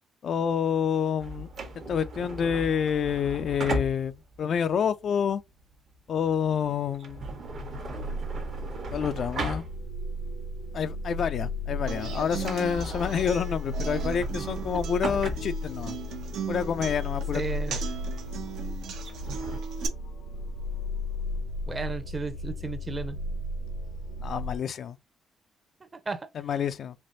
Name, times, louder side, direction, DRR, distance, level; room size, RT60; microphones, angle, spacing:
voice 1, 0.2-1.5 1.9-4.1 4.4-5.4 6.1-7.3 8.9-9.7 10.7-16.0 16.5-17.4 17.7-17.8 24.2-25.0 26.3-26.9, left 7 dB, 60° left, 0.3 m, -28 dB
sound 1, 1.2-10.2 10.6-10.7 11.3-11.6 11.9-12.0 12.3-19.6, right 2 dB, 60° right, 1.1 m, -37 dB
sound 2, 7.5-24.6, left 1 dB, 90° left, 1.0 m, -35 dB
Human voice / Acoustic guitar, 11.9-19.9, right 6 dB, 80° right, 0.8 m, -38 dB
voice 2, 17.3-17.8 21.7-23.2 25.9-26.3, right 4 dB, 30° right, 0.7 m, -34 dB
3.3 x 2.9 x 2.7 m
cardioid pair, 90°, 0 cm